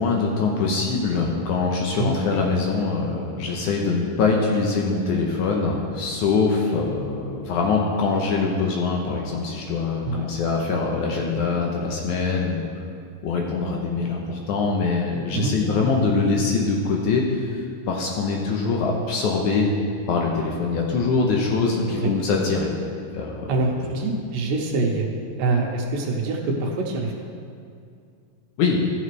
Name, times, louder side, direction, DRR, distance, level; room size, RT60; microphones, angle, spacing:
voice 1, 0.0-12.7 13.2-17.6 17.9-19.7 20.1-22.7 23.1-23.5 28.6-28.8, left 4 dB, 75° left, 0 dB, 2.0 m, -23 dB
voice 2, 23.5-25.1 25.4-27.1, right 3 dB, 80° right, 1 dB, 2.5 m, -25 dB
14.0 x 6.7 x 3.2 m, 2.4 s
omnidirectional pair, 4.0 m